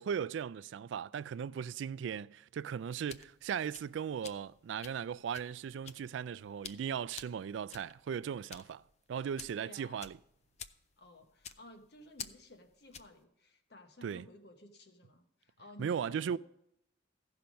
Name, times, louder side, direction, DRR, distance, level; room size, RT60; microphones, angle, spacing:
voice 1, 0.0-8.8 9.1-10.2 14.0-14.2 15.8-16.4, right 7 dB, 80° right, 0.3 m, -37 dB
sound 1, 2.8-13.2, left 7 dB, 35° left, 0.4 m, -51 dB
voice 2, 9.6-10.1 11.0-16.4, left 1 dB, 60° left, 1.2 m, -55 dB
15.5 x 5.7 x 5.1 m
head